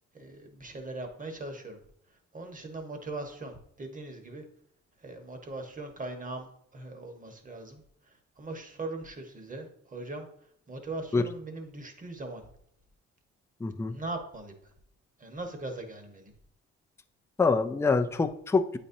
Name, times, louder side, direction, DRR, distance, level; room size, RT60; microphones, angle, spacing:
voice 1, 0.1-1.8 2.3-4.4 5.0-10.3 10.7-12.4 13.9-14.5 15.2-16.3, right 2 dB, 25° right, 4 dB, 1.2 m, -40 dB
voice 2, 13.6-13.9 17.4-18.8, left 4 dB, 10° left, 7 dB, 0.4 m, -25 dB
8.7 x 4.2 x 2.7 m, 0.71 s
cardioid pair, 90°, 30 cm